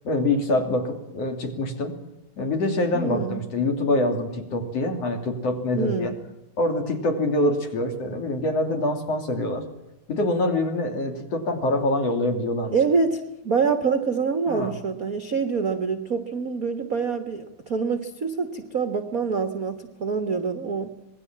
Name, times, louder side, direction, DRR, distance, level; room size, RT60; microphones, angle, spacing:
voice 1, 0.0-2.0 2.4-6.1 6.6-9.7 10.1-12.7 14.5-14.7, left 2 dB, 45° left, 5 dB, 4.0 m, -25 dB
voice 2, 2.9-3.5 5.8-6.2 12.7-20.9, right 5 dB, 60° right, 7 dB, 0.9 m, -26 dB
26.0 x 21.0 x 7.5 m, 0.92 s
omnidirectional pair, 4.0 m